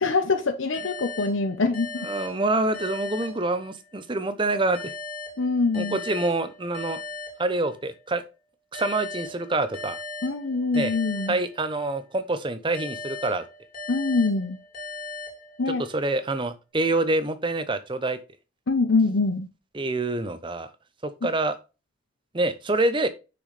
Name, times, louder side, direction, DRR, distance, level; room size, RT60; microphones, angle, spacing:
voice 1, 0.0-2.1 5.4-6.0 10.2-11.4 13.9-14.6 15.6-15.8 18.7-19.5, left 3 dB, 70° left, 0.8 m, -24 dB
sound 1, 0.7-4.1 4.7-8.1 8.7-12.1 12.7-16.1, left 3 dB, 40° left, 2.6 m, -39 dB
voice 2, 2.0-4.9 5.7-7.0 7.4-8.2 8.7-10.0 10.7-10.9 11.3-13.4 15.9-18.2 19.7-20.7 21.2-21.5 22.3-23.1, right 2 dB, 25° right, 0.7 m, -26 dB
6.2 x 6.1 x 3.2 m
head